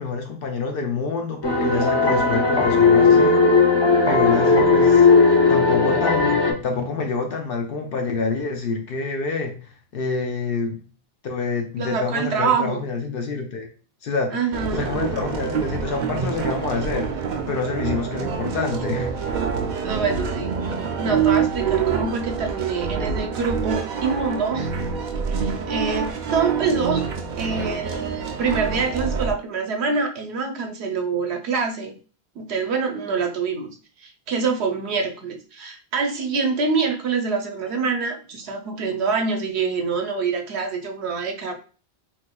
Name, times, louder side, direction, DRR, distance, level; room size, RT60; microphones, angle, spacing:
voice 1, 0.0-3.6 4.1-10.8 11.2-13.7 14.0-14.4 14.7-17.1 17.5-19.4, left 4 dB, 65° left, 3 dB, 0.9 m, -27 dB
sound 1, 1.4-6.5, left 4 dB, 30° left, 0.5 m, -16 dB
voice 2, 11.8-12.9 14.3-14.9 18.4-18.6 19.8-20.6 21.0-24.7 25.3-27.1 27.4-32.0 32.4-41.5, right 5 dB, 80° right, 4 dB, 0.9 m, -25 dB
sound 2, 14.5-29.3, right 6 dB, 60° right, 0.5 m, -26 dB
3.5 x 3.0 x 2.2 m, 0.37 s
omnidirectional pair, 1.1 m